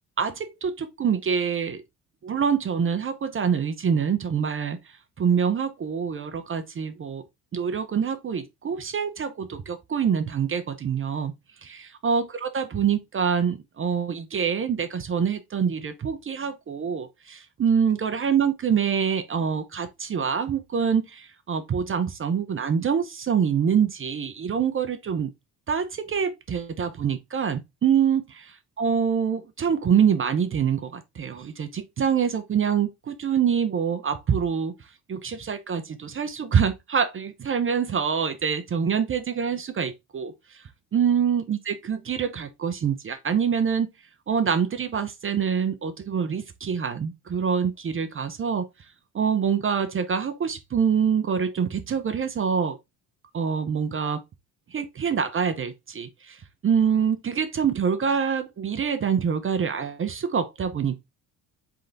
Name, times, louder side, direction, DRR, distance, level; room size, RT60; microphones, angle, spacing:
voice 1, 0.2-1.8 2.2-4.8 5.2-7.2 7.5-11.3 11.6-25.3 25.7-34.7 35.1-40.6 40.9-43.9 44.3-48.7 49.1-52.8 53.3-54.2 54.7-61.0, right 7 dB, 30° right, 0.7 m, -25 dB
3.8 x 3.4 x 3.7 m
hypercardioid pair, 65°, 40 cm